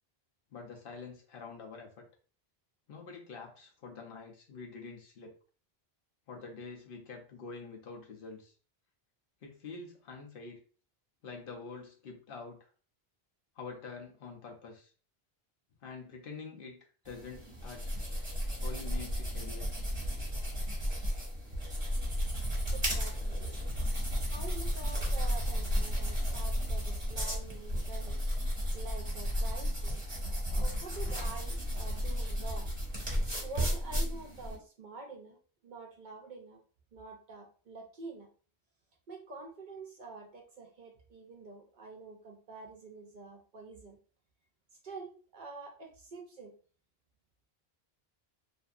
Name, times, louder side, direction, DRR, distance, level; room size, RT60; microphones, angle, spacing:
voice 1, 0.5-2.0 2.9-5.3 6.3-8.5 9.4-10.6 11.2-12.7 13.6-14.9 15.8-16.8 17.0-18.0 18.6-19.7, left 4 dB, 60° left, 0 dB, 0.8 m, -46 dB
sound 1, 17.1-34.5, equal, 30° right, 1.1 m, -33 dB
voice 2, 22.7-23.5 24.3-30.1 30.5-32.7 33.4-35.4 35.6-36.6 36.9-38.3 39.1-44.0 44.8-46.5, right 3 dB, 55° right, 1 dB, 0.6 m, -47 dB
2.6 x 2.5 x 2.3 m, 0.40 s
omnidirectional pair, 1.1 m